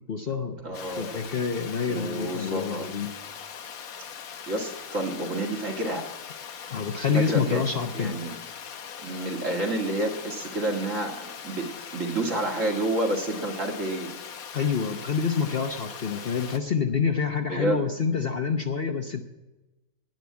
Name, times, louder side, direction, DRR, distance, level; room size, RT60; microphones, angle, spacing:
voice 1, 0.1-0.6 1.0-3.1 6.7-8.2 14.5-19.2, left 6 dB, 45° left, 5 dB, 1.0 m, -27 dB
voice 2, 0.6-1.3 1.9-2.9 4.5-6.1 7.1-7.6 7.9-8.3 9.0-14.1 17.5-17.9, right 1 dB, 55° right, 1 dB, 2.4 m, -29 dB
Water, 0.7-16.6, left 7 dB, 70° left, 1.4 m, -41 dB
10.5 x 10.0 x 9.4 m, 1.1 s
omnidirectional pair, 1.6 m